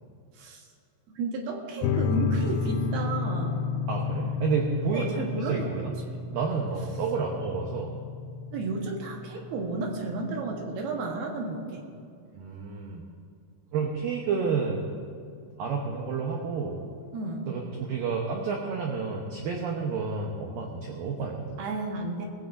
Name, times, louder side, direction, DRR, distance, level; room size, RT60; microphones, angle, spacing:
voice 1, 1.1-3.6 4.9-6.2 8.5-11.8 17.1-17.5 21.6-22.3, right 2 dB, 65° right, 1 dB, 2.9 m, -32 dB
sound 1, 1.8-10.8, left 5 dB, 85° left, 2.5 m, -32 dB
voice 2, 3.9-6.0 6.3-8.0 12.3-13.0 13.7-15.0 15.6-16.8 17.5-21.6, right 5 dB, 80° right, 0 dB, 2.0 m, -30 dB
20.0 x 16.0 x 2.7 m, 2.3 s
omnidirectional pair, 5.5 m